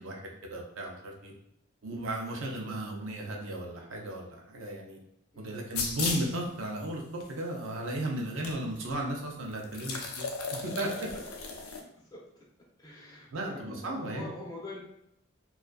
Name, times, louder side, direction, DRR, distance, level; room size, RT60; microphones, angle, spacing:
voice 1, 0.0-1.3 1.8-5.0 5.4-7.0 7.3-10.3 10.6-10.9 13.3-14.3, right 1 dB, 65° right, 0 dB, 0.5 m, -35 dB
voice 2, 5.3-5.8 9.9-10.2 11.9-12.2 12.8-14.8, left 2 dB, 15° left, -3 dB, 0.5 m, -45 dB
sound 1, 5.7-6.4 7.2-7.3 8.4-8.5 8.8-8.9 9.6-11.8, left 4 dB, 80° left, 0.4 m, -35 dB
2.5 x 2.3 x 2.2 m, 0.77 s
head